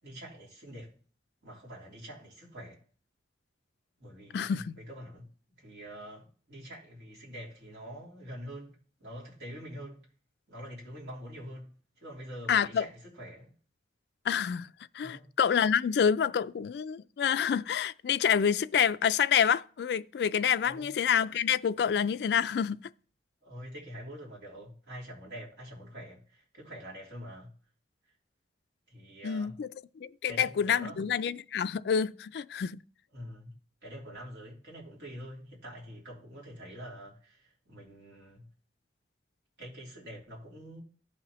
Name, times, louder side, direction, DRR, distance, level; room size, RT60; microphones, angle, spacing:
voice 1, 0.0-1.0 1.4-2.8 4.0-5.3 5.6-10.1 10.5-13.5 15.0-15.3 20.6-20.9 23.4-27.5 28.9-29.6 30.2-31.1 33.1-38.5 39.6-40.8, equal, 70° right, 3.2 m, -45 dB
voice 2, 4.3-4.8 12.5-12.8 14.3-22.9 29.2-29.7 30.0-32.8, left 7 dB, 65° left, 0.3 m, -28 dB
15.0 x 5.7 x 3.0 m
head